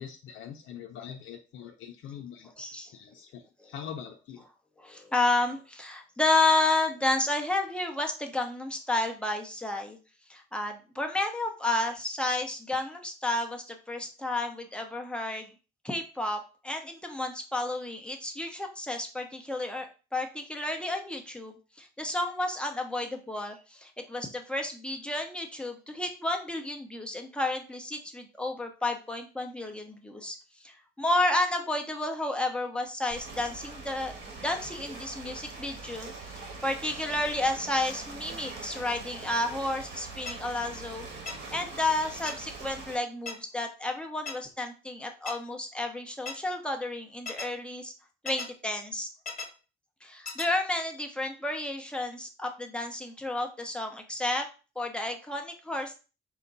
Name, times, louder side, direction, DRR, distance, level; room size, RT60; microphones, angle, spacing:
voice 1, 0.0-2.5 2.9-4.4, left 8 dB, 80° left, 2 dB, 0.6 m, -43 dB
voice 2, 2.6-2.9 3.6-3.7 4.8-10.0 10.3-15.5 15.8-19.9 20.1-34.1 34.4-41.1 41.5-47.9 48.2-49.1 50.0-54.5 54.8-56.0, left 2 dB, 5° left, 3 dB, 0.8 m, -31 dB
Ocean, 33.1-43.0, right 3 dB, 65° right, 1.4 m, -43 dB
sound 1, 40.3-40.4 41.3-41.4 42.3-42.4 43.3-43.4 44.3-44.4 45.3-45.4 46.3-46.4 47.3-47.5 48.3-48.5 49.3-49.5 50.3-50.5, left 4 dB, 35° left, 1.1 m, -35 dB
4.9 x 2.2 x 4.0 m, 0.34 s
cardioid pair, 90°, 20 cm